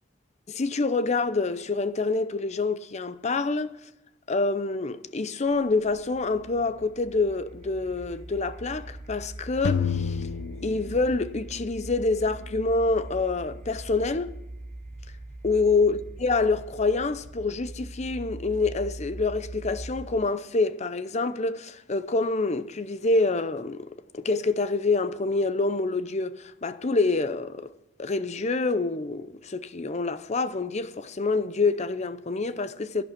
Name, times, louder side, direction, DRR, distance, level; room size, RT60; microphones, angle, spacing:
voice 1, 0.5-3.8 4.3-10.2 10.6-14.3 15.4-23.9 24.1-27.7 28.0-33.0, left 3 dB, 35° left, 0.7 m, -26 dB
sound 1, 5.5-20.3, right 1 dB, 40° right, 0.8 m, -42 dB
sound 2, 9.6-11.8, left 6 dB, 70° left, 0.5 m, -29 dB
11.5 x 11.0 x 5.9 m
head